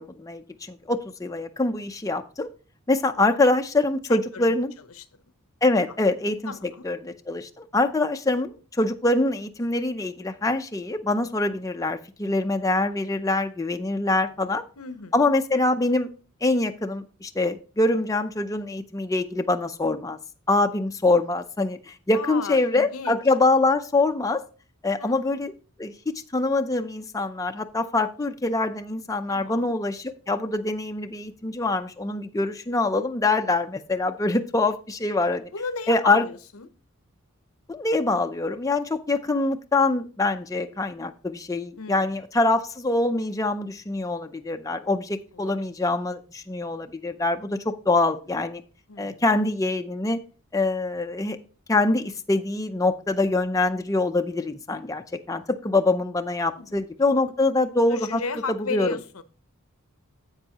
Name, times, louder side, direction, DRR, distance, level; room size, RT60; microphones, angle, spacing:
voice 1, 0.0-2.5 2.9-4.7 5.6-6.5 6.8-14.6 15.1-16.1 16.4-20.2 20.5-24.4 24.8-25.5 25.8-35.5 35.9-36.2 37.7-48.6 49.0-50.2 50.5-51.4 51.7-58.2 58.7-58.9, left 2 dB, 15° left, 0.5 m, -24 dB
voice 2, 4.1-4.5 4.9-5.1 5.9-6.0 6.5-6.9 14.1-14.5 14.8-15.3 22.1-23.2 25.0-25.4 29.3-29.7 35.5-36.7 41.8-42.1 45.3-45.6 47.9-48.0 48.9-49.2 56.5-56.8 57.9-59.2, left 4 dB, 80° left, 0.8 m, -35 dB
10.0 x 8.1 x 2.9 m
head